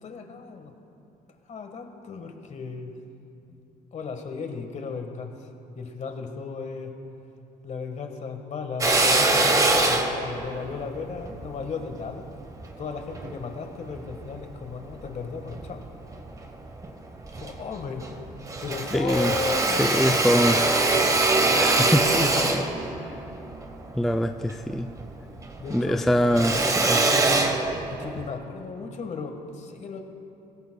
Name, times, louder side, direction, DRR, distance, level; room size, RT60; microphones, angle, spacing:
voice 1, 0.0-0.7 1.5-2.9 3.5-3.6 3.9-5.5 5.7-6.9 7.6-12.3 12.8-15.8 17.3-18.0 18.6-20.4 25.6-26.0 27.9-30.0, left 5 dB, 45° left, 5 dB, 1.5 m, -35 dB
Drill, 8.8-13.3 13.9-15.1 15.5-16.5 16.8-16.9 17.2-18.2 18.4-25.1 25.4-28.3, right 2 dB, 20° right, 1.2 m, -24 dB
voice 2, 18.9-19.3 19.8-20.6 21.5-22.7 24.0-24.9 25.7-27.0, equal, ahead, 5 dB, 0.3 m, -24 dB
21.0 x 17.5 x 2.3 m, 2.8 s
cardioid pair, 110°, 17 cm